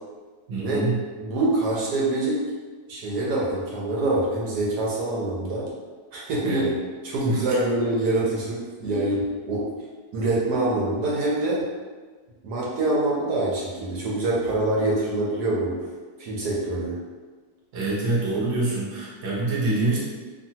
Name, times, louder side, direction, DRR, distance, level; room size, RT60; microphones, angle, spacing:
voice 1, 0.5-1.0 6.4-6.7 7.2-7.4 17.7-20.0, right 2 dB, 50° right, -6 dB, 0.9 m, -25 dB
voice 2, 1.2-2.4 2.9-5.7 6.1-6.7 7.0-9.6 10.1-11.6 12.4-15.8 16.2-16.9, right 2 dB, 75° right, -5 dB, 1.2 m, -25 dB
2.6 x 2.6 x 2.7 m, 1.4 s
omnidirectional pair, 1.8 m